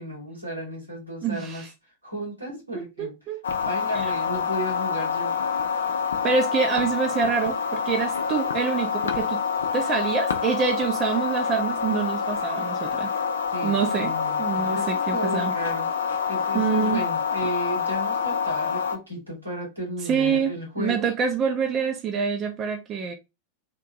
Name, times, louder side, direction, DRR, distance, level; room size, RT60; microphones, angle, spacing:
voice 1, 0.0-1.7 2.0-3.1 3.6-5.3 13.5-15.9 16.3-21.1, equal, 90° right, 2.2 m, -34 dB
voice 2, 1.2-1.7 2.7-3.4 3.9-4.1 6.2-9.4 9.7-13.1 13.6-15.5 16.5-17.0 20.0-23.1, right 6 dB, 30° right, 0.7 m, -26 dB
sound 1, 3.4-19.0, left 6 dB, 65° left, 0.6 m, -27 dB
3.7 x 2.8 x 3.5 m
figure-of-eight pair, 90°, 0 cm